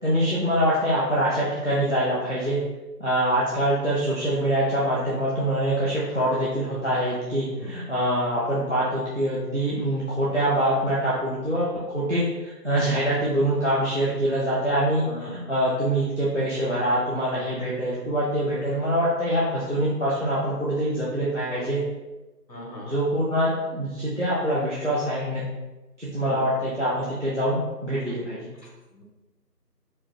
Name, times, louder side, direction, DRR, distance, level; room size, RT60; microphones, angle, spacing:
voice 1, 0.0-2.6 3.0-21.8 22.8-25.4 26.0-28.5, right 1 dB, 50° right, -7 dB, 0.6 m, -24 dB
voice 2, 22.5-23.0 26.3-26.4 28.9-29.0, left 1 dB, 85° left, -1 dB, 1.3 m, -38 dB
4.7 x 2.1 x 2.9 m, 1.1 s
figure-of-eight pair, 180°, 49 cm